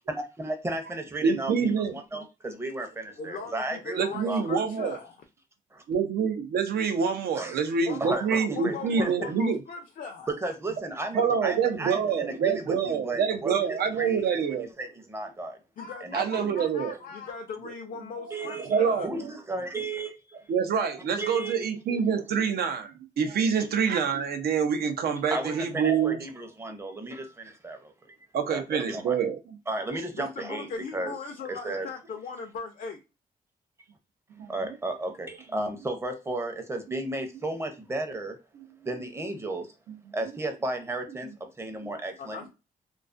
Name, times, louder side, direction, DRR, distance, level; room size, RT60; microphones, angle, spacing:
voice 1, 0.1-4.5 5.7-5.8 7.3-7.7 8.0-9.3 10.4-15.6 16.0-16.5 18.3-18.8 19.0-20.4 21.2-21.6 25.3-28.2 28.5-29.1 29.7-31.1 31.5-31.9 34.5-38.4 38.8-39.7 40.1-41.3 41.6-42.5, right 2 dB, 15° right, 0.6 m, -34 dB
voice 2, 1.2-1.9 4.0-5.0 5.9-9.6 11.1-14.7 16.1-16.9 18.2-18.3 18.6-19.2 20.5-26.2 28.3-29.4 34.4-34.5, right 6 dB, 85° right, 0.5 m, -26 dB
voice 3, 3.2-5.2 7.8-10.3 15.8-19.1 30.2-33.0 42.2-42.5, left 5 dB, 60° left, 0.4 m, -39 dB
2.3 x 2.3 x 2.4 m
cardioid pair, 120°, 16 cm